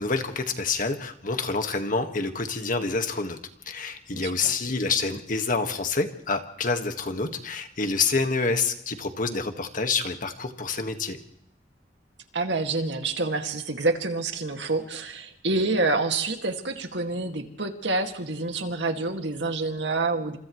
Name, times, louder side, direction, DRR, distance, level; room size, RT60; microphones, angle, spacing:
voice 1, 0.0-3.4 3.7-11.2, left 4 dB, 50° left, 6 dB, 1.7 m, -27 dB
voice 2, 4.1-4.5 12.3-20.4, right 3 dB, 75° right, 5 dB, 2.2 m, -27 dB
29.5 x 27.5 x 3.2 m, 0.75 s
head